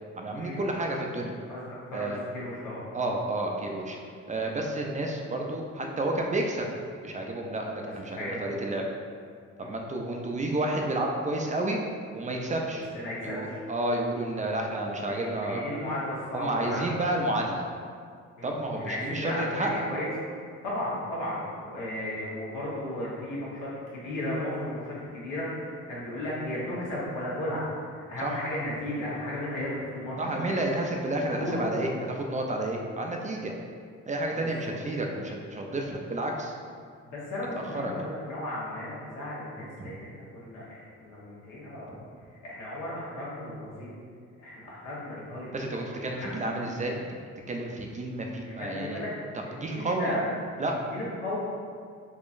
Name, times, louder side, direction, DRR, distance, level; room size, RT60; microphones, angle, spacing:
voice 1, 0.2-1.4 1.9-2.2 2.9-4.0 4.3-6.7 7.0-8.8 9.6-11.8 12.1-12.9 13.2-15.6 16.3-17.7 18.4-19.9 28.2-28.3 30.2-33.5 34.1-36.5 37.7-37.9 39.8-39.9 45.5-47.1 47.5-49.0 49.3-50.1 50.6-50.8, right 1 dB, 25° right, 1 dB, 0.4 m, -30 dB
voice 2, 1.5-2.8 8.1-8.5 9.6-9.7 12.9-13.6 15.1-16.9 18.4-19.4 19.7-20.1 20.6-30.6 31.4-31.6 34.4-34.7 37.0-42.0 42.4-43.9 44.4-45.5 46.2-46.3 48.4-49.1 49.4-50.2 50.9-51.4, left 1 dB, 90° left, -7 dB, 1.1 m, -35 dB
3.7 x 2.9 x 2.5 m, 2.1 s
cardioid pair, 90°, 30 cm